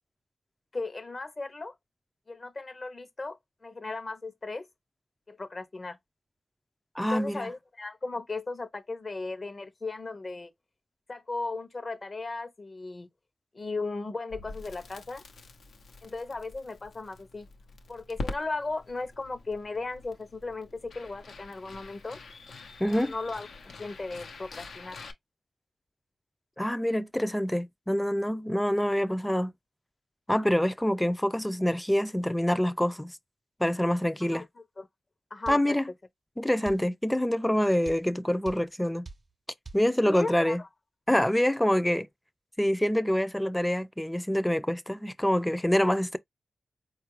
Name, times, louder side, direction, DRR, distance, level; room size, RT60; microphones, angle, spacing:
voice 1, 0.7-1.8 2.3-4.7 5.3-6.0 7.0-10.5 11.1-13.1 13.5-15.2 16.0-17.5 17.9-22.2 22.9-23.5 23.8-25.0 34.2-34.4 34.8-34.9 35.3-35.8 40.0-40.6, left 3 dB, 45° left, 0.8 m, -36 dB
voice 2, 7.0-7.5 22.8-23.1 26.6-29.5 30.3-33.2 33.6-34.4 35.5-35.9 36.4-39.1 39.7-40.6 41.1-42.1 42.6-46.2, equal, 10° left, 0.4 m, -26 dB
Crackle, 14.3-25.1, left 3 dB, 85° left, 0.7 m, -45 dB
sound 1, 35.5-35.7 36.7-36.9 37.9-38.1 38.5-38.7 39.1-39.3 39.7-39.9, right 3 dB, 45° right, 0.5 m, -43 dB
4.2 x 2.4 x 3.0 m
cardioid pair, 55°, 0 cm